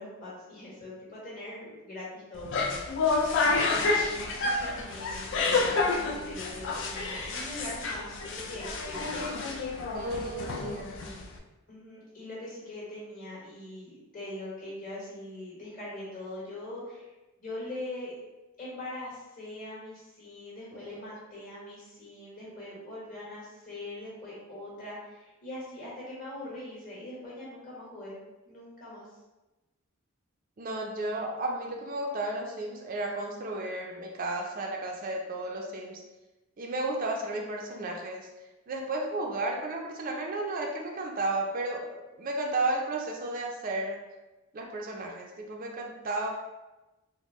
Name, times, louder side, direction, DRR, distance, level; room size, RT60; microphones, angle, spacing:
voice 1, 0.0-2.8 3.4-9.3 10.6-11.2 11.7-17.1 17.4-18.1 18.6-28.1 28.4-29.0, left 1 dB, 40° left, -7 dB, 1.5 m, -42 dB
sound 1, 2.3-11.4, left 3 dB, 55° left, 0.4 m, -29 dB
voice 2, 9.9-10.9 30.6-36.0 36.6-38.3 38.7-44.0 44.5-46.3, right 2 dB, 40° right, 0 dB, 0.4 m, -33 dB
4.2 x 2.0 x 3.0 m, 1.1 s
head